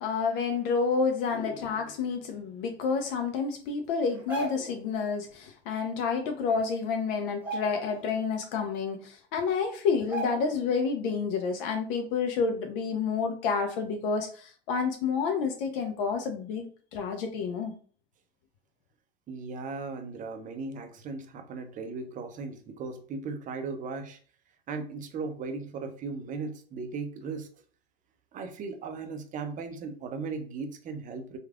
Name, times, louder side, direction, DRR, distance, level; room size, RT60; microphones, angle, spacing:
voice 1, 0.0-17.7, left 5 dB, 55° left, 5 dB, 0.6 m, -29 dB
sound 1, 4.1-4.8 6.3-6.4 6.7-6.9 7.3-8.2 8.5-8.6 9.4-9.5 10.1-10.7 11.1-11.2, right 2 dB, 5° right, 1.1 m, -37 dB
voice 2, 19.3-24.2 24.7-27.5 28.3-31.4, right 4 dB, 25° right, 7 dB, 0.5 m, -37 dB
3.1 x 2.4 x 2.4 m, 0.44 s
hypercardioid pair, 95°, 33 cm